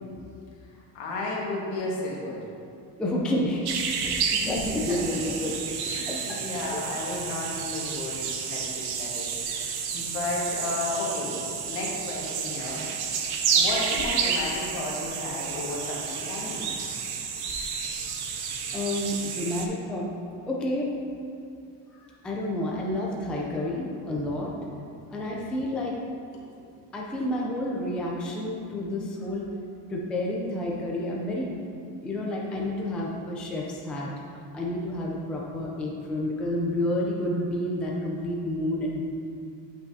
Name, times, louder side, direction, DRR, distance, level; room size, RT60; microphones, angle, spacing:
voice 1, 0.6-2.5 4.0-5.0 5.9-13.1 13.5-16.7 24.0-24.2 24.6-24.7 25.5-25.6 26.6-26.7, left 2 dB, 70° left, -4 dB, 1.6 m, -34 dB
voice 2, 3.0-3.7 4.0-4.1 4.4-5.6 6.1-6.4 6.7-6.8 18.1-18.2 18.7-20.1 20.5-20.9 21.9-24.5 25.1-26.0 26.9-29.5 29.9-31.6 32.0-34.1 34.5-39.0, left 1 dB, ahead, -3 dB, 0.3 m, -30 dB
sound 1, 3.6-19.7, right 6 dB, 55° right, 0.7 m, -30 dB
8.8 x 5.7 x 2.7 m, 2.5 s
cardioid pair, 165°, 46 cm